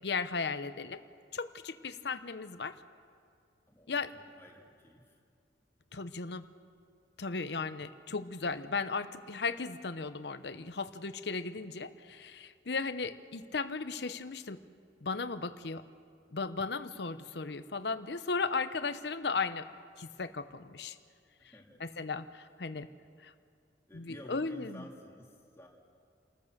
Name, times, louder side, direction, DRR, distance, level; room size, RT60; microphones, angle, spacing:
voice 1, 0.0-1.0 1.3-2.7 3.9-4.1 5.9-6.5 7.2-14.6 15.0-15.8 16.3-19.7 20.0-21.0 22.0-22.9 23.2-23.3 23.9-24.8, left 4 dB, 65° left, 11 dB, 0.8 m, -36 dB
voice 2, 3.7-4.0 4.3-5.2 21.5-21.8 23.9-25.7, equal, 15° left, -1 dB, 2.5 m, -52 dB
28.5 x 14.0 x 6.7 m, 2.3 s
head